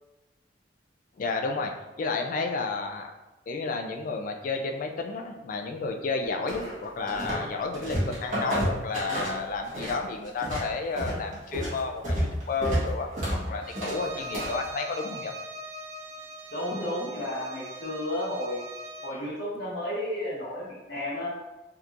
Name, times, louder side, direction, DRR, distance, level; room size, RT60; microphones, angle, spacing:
voice 1, 1.2-3.1 3.5-13.1 13.5-15.3, left 4 dB, 50° left, 4 dB, 0.4 m, -31 dB
sound 1, 6.5-7.5 7.7-10.0 10.3-14.7, equal, 45° right, 1.3 m, -30 dB
Bowed string instrument, 13.6-19.2, right 1 dB, 65° right, 0.4 m, -41 dB
voice 2, 16.5-18.7 19.0-21.3, left 1 dB, 65° left, -7 dB, 0.9 m, -32 dB
3.5 x 2.8 x 2.5 m, 1.1 s
head